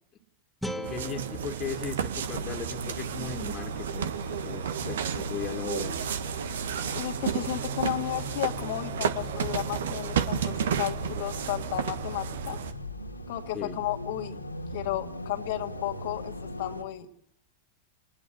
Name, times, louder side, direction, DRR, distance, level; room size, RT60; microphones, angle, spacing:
sound 1, 0.6-3.7, equal, ahead, 2.2 m, -41 dB
voice 1, 0.7-6.0 13.5-13.8, left 5 dB, 30° left, 4 dB, 2.3 m, -37 dB
sound 2, 0.8-12.7, right 8 dB, 60° right, 1.6 m, -32 dB
sound 3, 2.2-16.8, left 1 dB, 85° left, 2.2 m, -40 dB
voice 2, 6.9-12.6 13.3-14.4 14.7-16.3 16.6-17.1, left 14 dB, 50° left, 4 dB, 1.9 m, -33 dB
28.5 x 20.5 x 7.7 m, 0.69 s
figure-of-eight pair, 90°, 0 cm